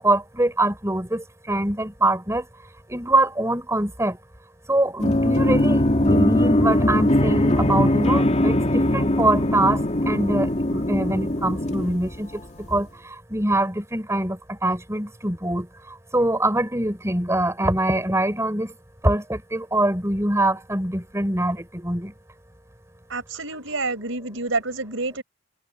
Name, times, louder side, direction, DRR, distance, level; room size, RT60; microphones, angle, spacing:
voice 1, 0.0-2.5 2.9-4.2 4.7-18.8 19.0-22.1, right 1 dB, 15° right, 4.9 m, -24 dB
sound 1, 5.0-12.6, left 1 dB, 35° left, 2.6 m, -21 dB
voice 2, 23.1-25.2, right 3 dB, 65° right, 5.3 m, -28 dB
head